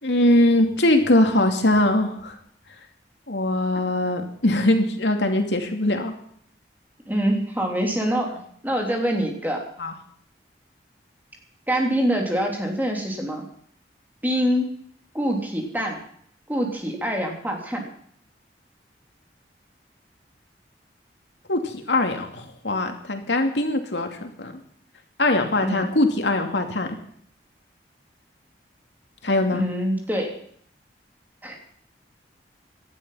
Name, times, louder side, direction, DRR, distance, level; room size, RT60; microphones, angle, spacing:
voice 1, 0.0-2.3 3.3-6.1 9.8-9.9 21.5-24.5 25.2-26.9 29.2-29.6, left 1 dB, 85° left, 5 dB, 2.6 m, -21 dB
voice 2, 7.1-8.3 8.6-9.6 11.7-13.4 14.2-14.7 15.1-16.0 16.5-17.8 25.6-25.8 29.5-30.3 31.4-31.6, equal, 10° right, 1 dB, 3.4 m, -25 dB
18.0 x 12.5 x 5.7 m, 0.62 s
head